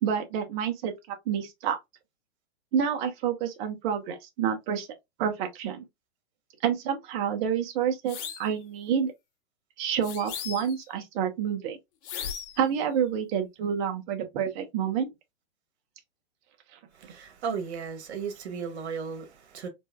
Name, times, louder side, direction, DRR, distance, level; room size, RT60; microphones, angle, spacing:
voice 1, 0.0-1.8 2.7-4.9 5.2-5.9 6.6-9.1 9.8-11.8 12.6-15.1 17.0-17.1, right 8 dB, 45° right, 1.1 m, -28 dB
sound 1, 8.1-8.5 10.0-10.9 12.0-12.7, left 8 dB, 55° left, 1.1 m, -37 dB
voice 2, 16.9-19.7, right 6 dB, 70° right, 1.7 m, -35 dB
4.5 x 2.7 x 2.3 m
hypercardioid pair, 140°, 34 cm